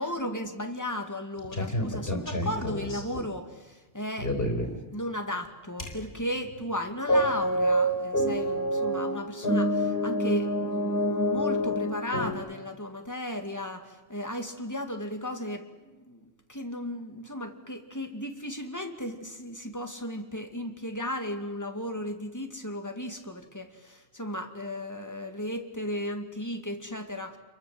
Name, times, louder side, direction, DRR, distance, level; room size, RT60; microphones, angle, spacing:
voice 1, 0.0-27.4, left 1 dB, 15° left, 5 dB, 2.3 m, -35 dB
sound 1, 1.4-3.2 4.2-4.8 5.8-6.2 6.5-6.6 7.1-12.3, equal, 55° left, 4.2 m, -27 dB
29.5 x 23.0 x 7.7 m, 1.1 s
omnidirectional pair, 1.1 m